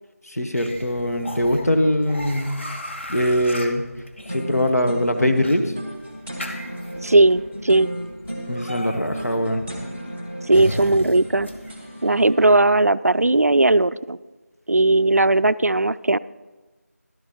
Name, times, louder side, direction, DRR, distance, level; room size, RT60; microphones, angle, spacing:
voice 1, 0.3-2.6 3.1-3.8 4.3-5.7 8.5-9.6, left 1 dB, 70° left, 5 dB, 1.4 m, -22 dB
sound 1, 0.5-11.7, left 1 dB, 45° left, 1.3 m, -36 dB
sound 2, 4.2-12.6, equal, 10° left, 0.7 m, -35 dB
voice 2, 7.0-7.9 10.5-11.5 12.0-14.2 14.7-16.2, right 2 dB, 70° right, 16 dB, 0.4 m, -17 dB
13.5 x 12.0 x 3.0 m, 1.2 s
figure-of-eight pair, 175°, 9 cm